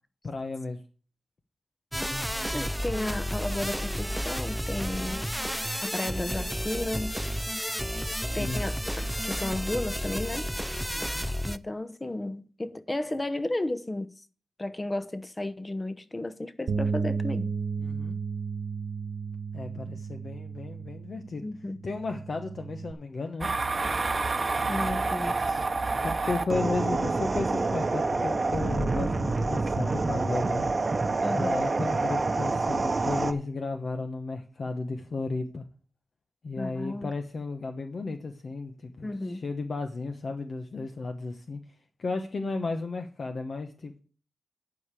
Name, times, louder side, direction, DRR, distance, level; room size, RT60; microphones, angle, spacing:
voice 1, 0.2-0.8 8.3-8.6 10.9-11.3 17.8-18.2 19.5-21.5 21.8-23.5 26.0-30.7 31.3-35.6 36.4-41.6 42.0-44.0, left 3 dB, 60° left, 1.0 m, -34 dB
sound 1, 1.9-11.6, equal, ahead, 0.5 m, -32 dB
voice 2, 2.5-5.2 5.8-7.2 8.3-10.5 11.5-14.1 14.6-17.5 21.4-21.8 24.7-25.6 31.2-31.6 36.6-37.1 39.0-39.4, left 1 dB, 25° left, 0.9 m, -33 dB
Bass guitar, 16.7-22.9, right 5 dB, 70° right, 1.4 m, -33 dB
sound 2, 23.4-33.3, right 3 dB, 40° right, 0.9 m, -27 dB
10.5 x 5.1 x 8.3 m
cardioid pair, 75°, 0 cm